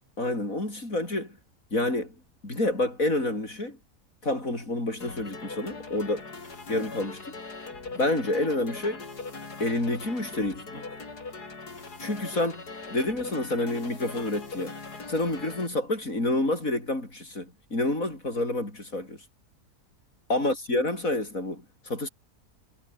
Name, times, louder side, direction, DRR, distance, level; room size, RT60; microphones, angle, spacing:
voice 1, 0.2-1.4 1.7-2.1 2.4-3.8 4.2-6.3 6.7-7.3 7.9-9.0 9.6-10.8 12.0-14.7 15.1-19.2 20.3-22.1, left 2 dB, 60° left, 8.5 m, -28 dB
sound 1, 5.0-15.7, left 3 dB, 85° left, 4.2 m, -40 dB
omnidirectional pair, 1.6 m